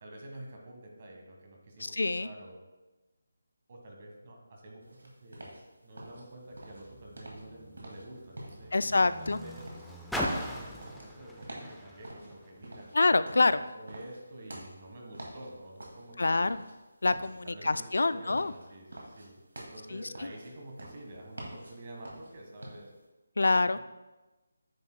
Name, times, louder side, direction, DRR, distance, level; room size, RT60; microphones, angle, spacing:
voice 1, 0.0-2.6 3.7-4.8 5.2-5.5 5.8-9.5 10.5-13.2 13.6-16.5 17.4-22.9 23.7-23.8, right 1 dB, 35° right, 0 dB, 1.4 m, -48 dB
voice 2, 1.8-2.3 8.7-9.4 12.9-13.6 16.2-16.6 17.0-18.5 19.9-20.3 23.4-23.8, left 3 dB, 70° left, 14 dB, 0.3 m, -26 dB
sound 1, 4.8-23.0, right 1 dB, 80° right, 2.1 m, -48 dB
Car, 6.5-13.1 13.9-14.0, equal, ahead, 0.4 m, -41 dB
9.3 x 7.2 x 2.2 m, 1.1 s
figure-of-eight pair, 170°, 0 cm